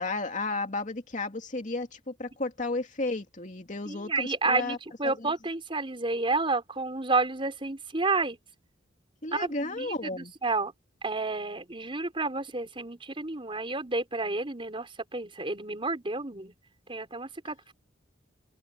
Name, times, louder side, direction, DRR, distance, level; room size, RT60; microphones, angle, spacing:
voice 1, 0.0-4.8 5.0-5.3 9.2-10.3, left 2 dB, 40° left, 2.7 m, -33 dB
voice 2, 3.9-8.4 9.3-9.9 10.1-10.7 11.0-16.5 16.9-17.7, right 3 dB, 30° right, 4.5 m, -30 dB
open air
head